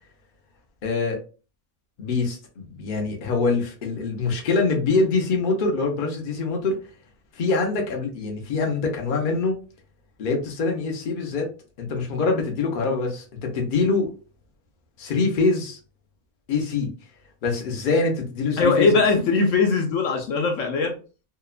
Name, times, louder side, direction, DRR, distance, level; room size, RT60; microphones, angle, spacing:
voice 1, 0.8-1.2 2.0-6.8 7.3-9.6 10.2-11.5 11.8-14.1 15.0-15.8 16.5-16.9 17.4-19.0, left 3 dB, 50° left, 1 dB, 0.6 m, -24 dB
voice 2, 18.6-20.9, left 4 dB, 70° left, 3 dB, 0.9 m, -20 dB
2.8 x 2.2 x 2.3 m, 0.35 s
omnidirectional pair, 1.5 m